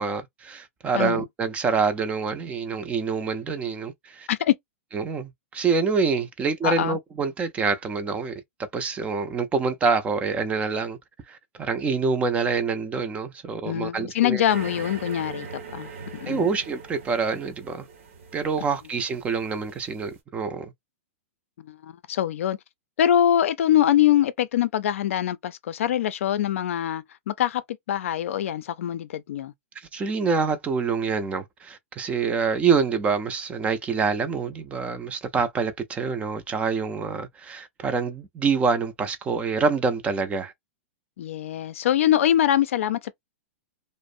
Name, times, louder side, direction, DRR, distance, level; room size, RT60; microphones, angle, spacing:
voice 1, 0.0-4.3 4.9-8.3 8.7-11.0 11.3-14.4 16.3-17.9 18.3-20.7 29.8-40.5, right 5 dB, 15° right, 0.4 m, -26 dB
voice 2, 6.6-7.0 13.6-15.5 15.7-15.9 16.2-16.5 21.6-22.6 23.0-27.6 27.9-29.5 41.2-43.1, left 11 dB, 75° left, 0.4 m, -23 dB
sound 1, 14.5-20.1, right 5 dB, 65° right, 0.9 m, -41 dB
2.5 x 2.0 x 2.4 m
hypercardioid pair, 135°, 7 cm